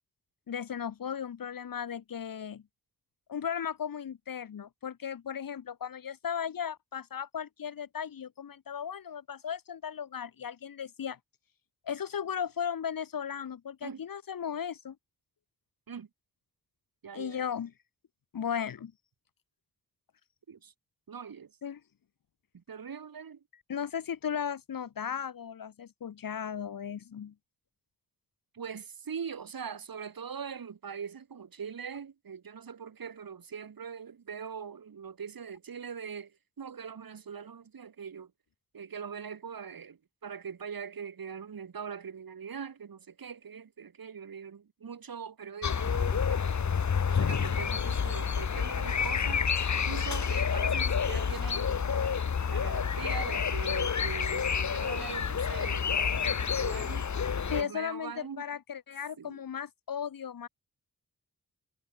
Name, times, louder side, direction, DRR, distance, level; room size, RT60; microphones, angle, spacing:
voice 1, 0.5-2.6 3.3-11.2 11.8-14.9 17.1-17.7 18.3-18.9 21.6-21.8 23.7-27.3 57.5-60.5, left 8 dB, 75° left, 1.4 m, -36 dB
voice 2, 17.0-17.4 20.5-20.7 21.1-21.6 22.5-23.4 28.5-38.3 38.7-46.6 47.1-52.2 52.5-57.1 57.5-58.4 59.2-59.4, right 6 dB, 80° right, 6.6 m, -42 dB
sound 1, 45.6-57.6, left 6 dB, 55° left, 1.3 m, -29 dB
cardioid pair, 65°, 35 cm